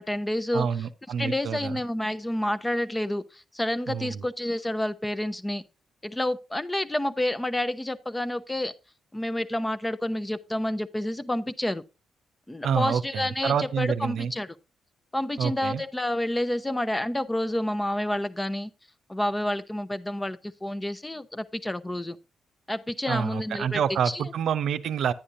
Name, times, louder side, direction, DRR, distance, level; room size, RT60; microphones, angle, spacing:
voice 1, 0.0-0.7 1.2-5.6 6.0-8.7 9.1-11.8 12.5-14.6 15.1-18.7 19.1-22.2 22.7-24.3, left 1 dB, 15° left, 0.8 m, -29 dB
voice 2, 0.5-1.8 3.9-4.2 12.6-14.3 15.4-15.8 23.1-25.1, right 7 dB, 70° right, 0.6 m, -28 dB
10.5 x 9.8 x 2.6 m
hypercardioid pair, 45°, 0 cm